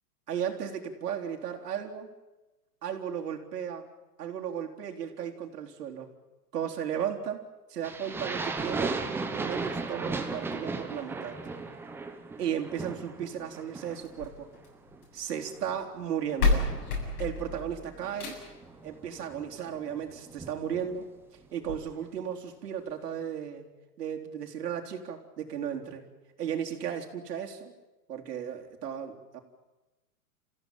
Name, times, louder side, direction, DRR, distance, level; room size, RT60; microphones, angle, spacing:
voice 1, 0.3-2.1 2.8-3.9 4.2-6.1 6.5-7.4 7.7-9.0 9.3-11.4 12.4-14.5 15.1-16.7 17.2-18.4 18.8-21.1 21.5-23.7 24.0-26.0 26.4-27.7 28.1-29.4, right 8 dB, 80° right, 2 dB, 4.0 m, -35 dB
sound 1, 7.8-14.3 14.5-15.0 15.4-21.0, right 3 dB, 5° right, 0.9 m, -37 dB
sound 2, 14.0-15.2 16.0-16.1 16.4-18.7 20.0-20.1 20.6-20.7 21.0-21.1 21.6-21.7, left 3 dB, 70° left, 7.7 m, -30 dB
28.5 x 16.0 x 9.2 m, 1.1 s
hypercardioid pair, 160°, 47 cm